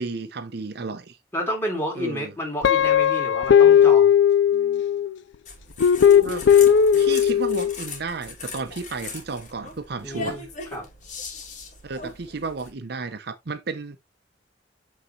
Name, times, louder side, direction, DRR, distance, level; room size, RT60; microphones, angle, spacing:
voice 1, 0.0-1.2 2.0-2.3 6.2-6.5 7.0-10.4 11.8-14.0, right 4 dB, 60° right, 0.7 m, -32 dB
voice 2, 1.3-4.1 10.0-10.4 10.7-10.9, equal, 15° left, 3.5 m, -30 dB
Guitar, 2.6-5.1 5.8-7.7, left 8 dB, 80° left, 0.4 m, -17 dB
sound 1, 5.5-12.7, left 4 dB, 45° left, 2.6 m, -38 dB
8.6 x 4.1 x 3.1 m
head